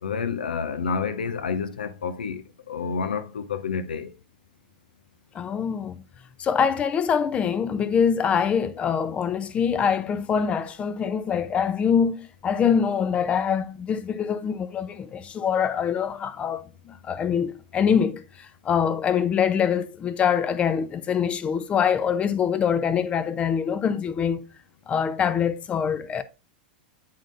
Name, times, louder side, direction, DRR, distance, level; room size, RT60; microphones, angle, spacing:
voice 1, 0.0-4.1, left 5 dB, 70° left, 0.7 m, -29 dB
voice 2, 5.3-6.0 6.4-24.5 24.9-26.2, left 7 dB, 25° left, 0.6 m, -24 dB
10.0 x 3.8 x 2.5 m
figure-of-eight pair, 95°, 5 cm